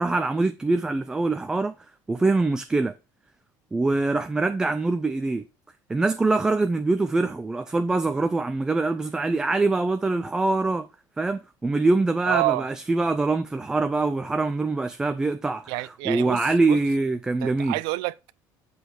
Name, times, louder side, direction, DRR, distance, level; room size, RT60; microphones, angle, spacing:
voice 1, 0.0-1.7 2.1-2.9 3.7-5.5 5.9-10.9 11.2-15.7 16.1-17.7, right 3 dB, 10° right, 0.4 m, -24 dB
voice 2, 12.3-12.7 15.7-16.8 17.4-18.4, right 19 dB, 70° right, 0.6 m, -28 dB
8.1 x 6.3 x 4.8 m
cardioid pair, 180°, 8 cm